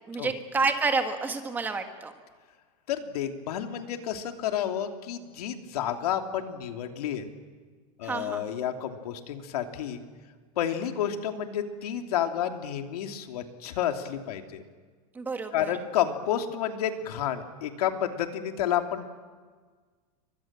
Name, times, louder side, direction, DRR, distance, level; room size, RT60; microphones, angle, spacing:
voice 1, 0.1-2.1 8.0-8.4 15.1-15.8, right 4 dB, 10° right, 6 dB, 1.5 m, -29 dB
voice 2, 2.9-7.3 8.0-10.0 10.6-14.6 15.5-19.1, left 10 dB, 85° left, 5 dB, 3.0 m, -30 dB
28.5 x 24.5 x 7.5 m, 1.5 s
supercardioid pair, 180°, 19 cm